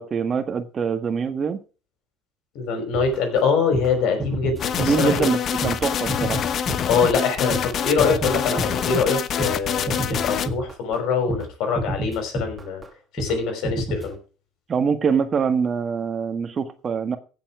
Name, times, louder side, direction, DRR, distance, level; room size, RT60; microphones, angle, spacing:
voice 1, 0.0-1.6 4.7-6.4 14.7-17.2, right 6 dB, 35° right, 9 dB, 1.5 m, -24 dB
voice 2, 2.5-5.3 6.9-12.8 13.1-14.2, left 5 dB, 65° left, 6 dB, 5.7 m, -24 dB
sound 1, 2.9-9.6 9.9-11.0 11.3-11.5 11.8-12.9 13.2-13.4 13.6-14.1, right 1 dB, 15° right, 2.6 m, -30 dB
sound 2, 4.6-10.5, left 8 dB, 45° left, 1.0 m, -26 dB
16.0 x 7.3 x 4.8 m, 0.35 s
cardioid pair, 115°, 0 cm